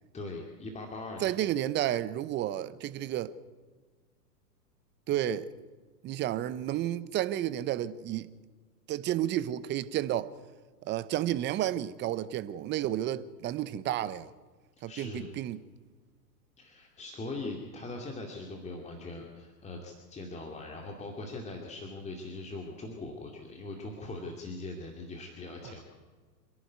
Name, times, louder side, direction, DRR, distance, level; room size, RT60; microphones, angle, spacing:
voice 1, 0.1-1.3 14.9-15.3 16.6-25.8, left 2 dB, 15° left, 2.5 m, -41 dB
voice 2, 1.2-3.3 5.1-5.5 6.0-8.3 8.9-10.3 10.8-14.3 14.8-15.6 25.6-25.7, right 12 dB, 20° right, 0.8 m, -31 dB
26.5 x 11.5 x 9.5 m
hypercardioid pair, 125°, 50 cm